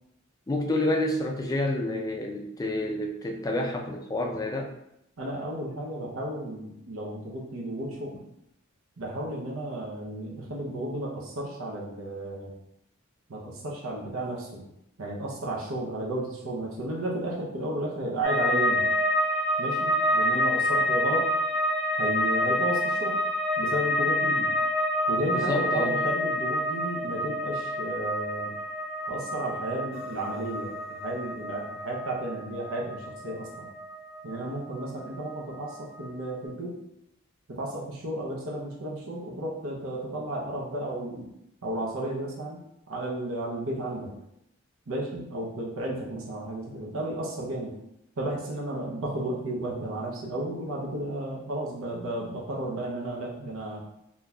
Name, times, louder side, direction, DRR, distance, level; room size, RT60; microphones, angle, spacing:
voice 1, 0.5-4.7 25.3-26.0, left 1 dB, 15° left, 2 dB, 0.3 m, -29 dB
voice 2, 5.2-8.2 9.0-12.5 13.3-14.6 15.0-18.9 19.6-21.4 22.0-23.2 23.6-24.5 25.1-28.5 29.1-33.7 34.2-36.7 37.5-41.3 41.6-42.6 42.9-44.1 44.9-47.7 48.2-53.8, right 1 dB, 85° right, -3 dB, 0.7 m, -33 dB
sound 1, 18.2-35.3 35.6-36.3, left 1 dB, 25° right, 1.1 m, -28 dB
3.7 x 2.6 x 2.3 m, 0.80 s
head